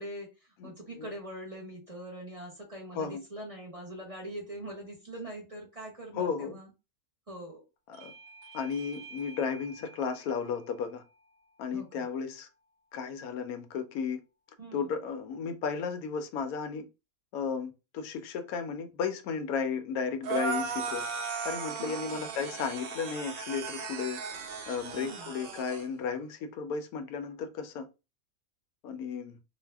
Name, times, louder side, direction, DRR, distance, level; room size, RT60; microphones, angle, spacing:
voice 1, 0.0-6.7 7.3-7.6 11.7-12.1 14.6-14.9 21.8-22.3 24.9-25.3, right 1 dB, 30° right, 0.8 m, -43 dB
voice 2, 0.6-1.0 3.0-3.2 6.2-6.6 8.0-8.1 8.5-11.0 11.6-12.5 12.9-14.2 14.7-16.8 17.3-21.0 21.4-24.2 24.7-27.9 28.8-29.4, left 6 dB, 85° left, 1.1 m, -34 dB
Bell / Doorbell, 7.9-13.1, right 3 dB, 90° right, 1.1 m, -52 dB
sound 1, 20.2-25.9, right 5 dB, 75° right, 0.5 m, -36 dB
2.6 x 2.1 x 3.3 m
omnidirectional pair, 1.5 m